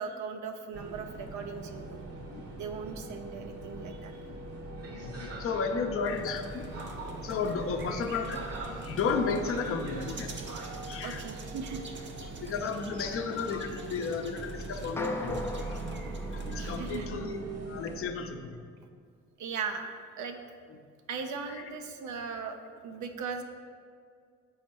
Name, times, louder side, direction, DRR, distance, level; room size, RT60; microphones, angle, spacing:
voice 1, 0.0-2.0 2.5-4.2 8.8-8.9 11.0-12.1 16.1-17.1 17.4-17.5 19.4-20.4 21.1-22.5 22.8-23.4, right 5 dB, 70° right, 5 dB, 0.6 m, -38 dB
sound 1, 0.7-18.0, right 2 dB, 55° right, 1.1 m, -41 dB
voice 2, 5.0-6.6 7.2-8.4 8.8-10.3 10.9-11.2 12.4-15.4 15.7-15.8 16.3-17.4 17.7-18.6 20.7-20.8 21.5-21.6, left 5 dB, 45° left, 4 dB, 0.6 m, -33 dB
sound 2, 6.0-17.1, right 3 dB, 40° right, 0.8 m, -46 dB
sound 3, 15.0-17.4, left 2 dB, 10° left, 0.4 m, -39 dB
6.4 x 4.3 x 4.6 m, 2.2 s
cardioid pair, 90°, 30 cm